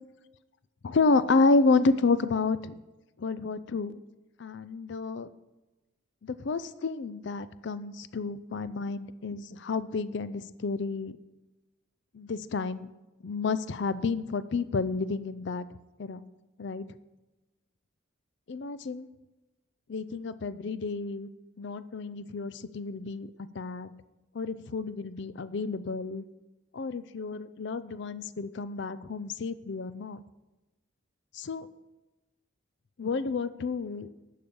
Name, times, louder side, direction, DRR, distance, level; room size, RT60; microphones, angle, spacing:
voice 1, 0.8-2.8 3.2-4.0 4.4-5.3 6.2-11.1 12.1-12.9 13.2-15.7 16.0-16.2 16.6-16.9 18.5-19.1 19.9-21.3 21.6-23.3 23.5-23.9 24.3-26.2 26.7-30.2 31.3-31.7 33.0-34.1, left 4 dB, 55° left, 15 dB, 0.5 m, -30 dB
11.5 x 6.7 x 5.4 m, 1.1 s
head